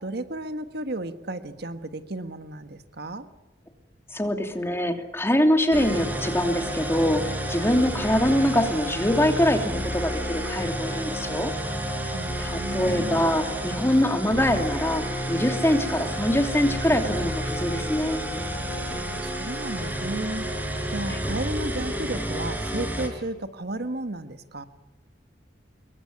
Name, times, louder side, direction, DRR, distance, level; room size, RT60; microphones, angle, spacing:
voice 1, 0.0-3.3 12.1-13.3 18.9-20.5 20.9-24.6, right 2 dB, 60° right, 9 dB, 1.5 m, -33 dB
voice 2, 4.1-11.5 12.1-15.0 15.3-18.2, left 1 dB, 15° left, 5 dB, 2.9 m, -24 dB
sound 1, 5.7-23.1, equal, 10° right, 5.1 m, -30 dB
26.5 x 23.0 x 9.8 m, 1.0 s
head